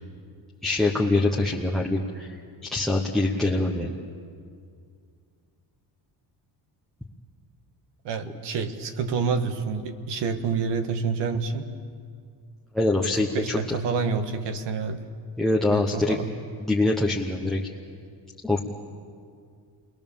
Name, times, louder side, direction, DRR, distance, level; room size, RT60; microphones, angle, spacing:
voice 1, 0.6-2.3 2.7-4.0 12.7-13.8 15.4-16.2 16.6-17.6 18.4-18.6, left 2 dB, ahead, 1 dB, 1.0 m, -24 dB
voice 2, 8.0-11.7 13.1-15.0 15.7-16.3, right 5 dB, 60° right, 8 dB, 1.7 m, -28 dB
30.0 x 21.0 x 7.2 m, 2.2 s
cardioid pair, 175°, 46 cm